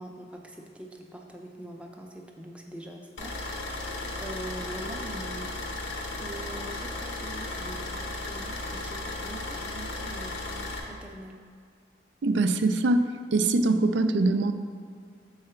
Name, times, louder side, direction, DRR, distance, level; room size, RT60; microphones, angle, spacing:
voice 1, 0.0-5.6 6.2-11.4, right 1 dB, 5° right, 1 dB, 0.6 m, -43 dB
sound 1, 3.2-10.8, left 2 dB, 85° left, 0.9 m, -35 dB
voice 2, 12.2-13.0 13.3-14.5, right 2 dB, 70° right, 9 dB, 0.4 m, -23 dB
7.5 x 4.8 x 4.4 m, 2.2 s
head